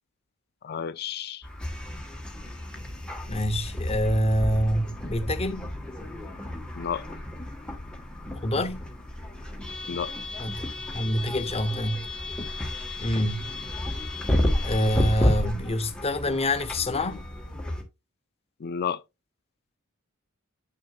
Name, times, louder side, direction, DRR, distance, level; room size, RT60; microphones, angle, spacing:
voice 1, 0.6-1.5 6.7-7.0 9.9-10.1 18.6-19.0, left 7 dB, 45° left, 0.5 m, -31 dB
sound 1, 1.4-17.8, left 1 dB, 5° left, 1.4 m, -31 dB
voice 2, 3.3-5.7 8.4-8.8 10.4-12.1 13.0-13.5 14.6-17.2, equal, 30° left, 0.9 m, -26 dB
8.6 x 6.2 x 2.4 m
head